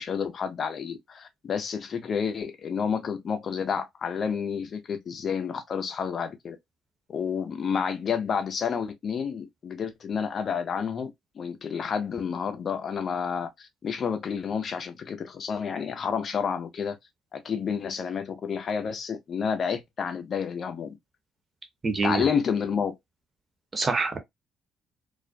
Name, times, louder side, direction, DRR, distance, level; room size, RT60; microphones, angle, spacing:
voice 1, 0.0-6.6 7.1-11.1 11.4-17.0 17.3-21.0 22.0-23.0, left 6 dB, 50° left, 0.5 m, -30 dB
voice 2, 21.8-22.3 23.7-24.2, right 3 dB, 35° right, 0.8 m, -25 dB
2.4 x 2.1 x 2.5 m
hypercardioid pair, 55°, 0 cm